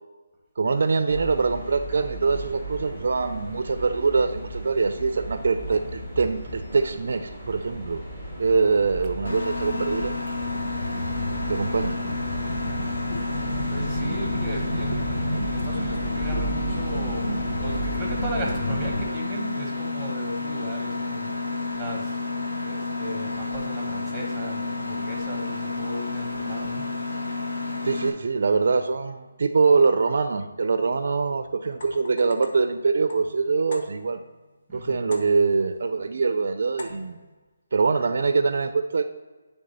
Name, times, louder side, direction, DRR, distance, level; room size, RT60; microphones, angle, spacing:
voice 1, 0.6-8.0 8.4-10.2 11.5-11.9 27.8-34.2 34.7-37.2 37.7-39.0, right 4 dB, 55° right, 9 dB, 0.4 m, -23 dB
sound 1, 1.1-19.0, right 1 dB, 25° left, 1.5 m, -32 dB
Mechanisms, 9.2-28.1, left 3 dB, 75° left, 1.5 m, -31 dB
voice 2, 13.5-17.3 17.6-22.2 22.6-26.8 34.7-35.0, right 1 dB, 5° right, -2 dB, 1.1 m, -36 dB
sound 2, 31.7-34.3 35.1-35.7 36.8-37.3, left 2 dB, 50° left, 0.9 m, -43 dB
9.6 x 3.5 x 4.0 m, 1.3 s
hypercardioid pair, 165°, 0 cm